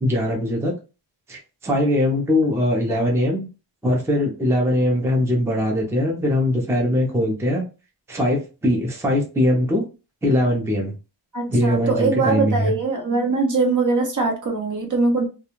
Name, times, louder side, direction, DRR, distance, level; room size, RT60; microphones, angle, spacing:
voice 1, 0.0-0.7 1.3-3.5 3.8-7.6 8.1-9.8 10.2-10.9 11.5-12.7, left 1 dB, 5° right, -1 dB, 0.6 m, -21 dB
voice 2, 11.3-15.3, right 3 dB, 45° right, 2 dB, 0.7 m, -22 dB
2.4 x 2.2 x 3.0 m, 0.32 s
wide cardioid pair, 145°, 43 cm